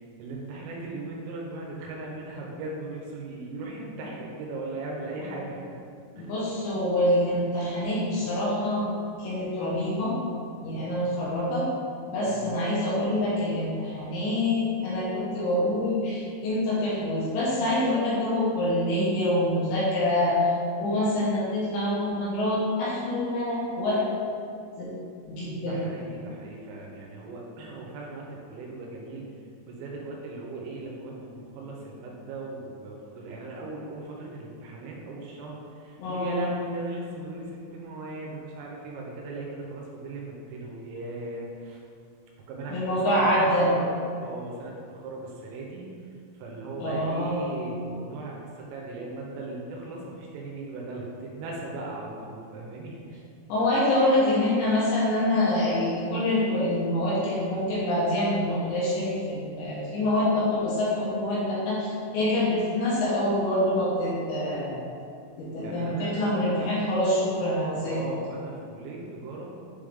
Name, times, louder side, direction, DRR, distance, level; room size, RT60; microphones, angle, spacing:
voice 1, 0.2-5.8 6.2-6.3 12.3-12.5 25.6-29.3 29.6-41.8 42.5-45.9 46.3-53.2 65.6-66.7 67.8-69.5, right 2 dB, 90° right, -2 dB, 3.4 m, -38 dB
voice 2, 6.2-8.9 9.2-10.2 10.6-11.7 12.1-20.5 20.8-24.0 24.8-24.9 25.3-25.8 36.0-36.4 42.7-43.7 46.8-47.6 53.5-61.9 62.1-64.8 65.4-68.0, left 1 dB, 75° left, -7 dB, 2.9 m, -26 dB
7.7 x 3.6 x 3.5 m, 2.4 s
omnidirectional pair, 5.9 m